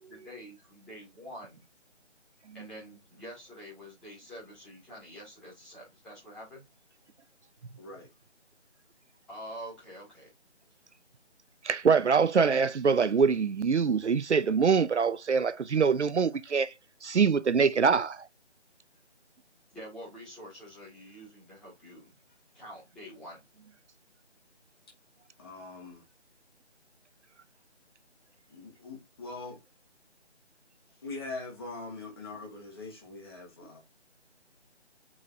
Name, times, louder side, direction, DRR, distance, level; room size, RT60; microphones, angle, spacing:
voice 1, 0.1-1.6 2.5-6.6 9.3-10.3 19.7-22.1 22.5-23.4, equal, ahead, 2.3 m, -46 dB
voice 2, 7.8-8.1 25.4-26.0 28.5-29.6 31.0-33.8, left 3 dB, 20° left, 1.8 m, -42 dB
voice 3, 11.6-16.7 17.0-18.3, right 5 dB, 75° right, 0.6 m, -24 dB
8.6 x 4.2 x 2.7 m
figure-of-eight pair, 160°, 35 cm